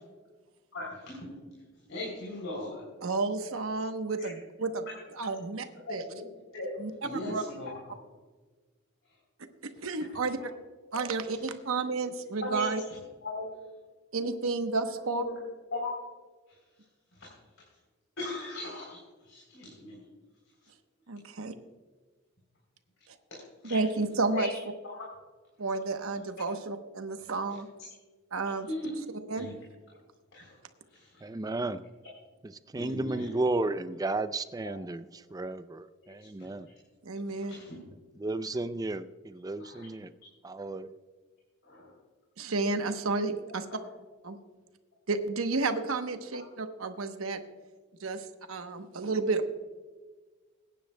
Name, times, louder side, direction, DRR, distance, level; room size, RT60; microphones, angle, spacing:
voice 1, 0.7-1.4 1.9-2.8 4.2-4.3 5.9-6.3 6.5-6.7 7.0-7.7 11.2-11.4 12.4-12.7 13.2-13.4 15.1-15.3 15.7-15.9 17.2-17.3 18.2-20.0 23.3-23.8 24.3-24.5 24.8-25.0 28.7-28.9 29.4-29.5 30.3-30.5 30.9-31.2 32.8-33.3 36.0-36.1 36.4-36.5 37.4-37.7 39.6-39.9 41.7-41.9 43.7-43.8, left 1 dB, 65° left, -4 dB, 3.4 m, -38 dB
voice 2, 3.0-4.8 5.1-6.0 6.8-7.4 9.6-10.4 10.9-12.8 14.1-15.2 21.1-21.5 23.7-24.5 25.6-27.7 28.3-28.7 29.3-29.5 37.0-37.6 42.4-43.6 44.2-44.4 45.1-47.4 48.0-49.5, right 3 dB, 80° right, 7 dB, 0.9 m, -31 dB
voice 3, 31.2-31.8 32.4-36.7 38.2-40.1 40.4-40.9, right 2 dB, 15° right, 12 dB, 0.4 m, -33 dB
22.0 x 10.0 x 2.2 m, 1.4 s
head